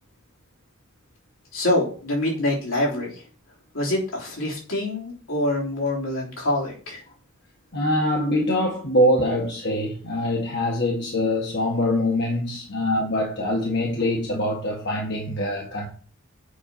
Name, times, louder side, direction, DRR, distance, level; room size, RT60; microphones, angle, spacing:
voice 1, 1.5-3.2 3.7-7.0, left 1 dB, 85° left, 3.6 m, -25 dB
voice 2, 7.7-15.9, left 1 dB, 55° left, 1.7 m, -24 dB
8.2 x 4.5 x 5.7 m
head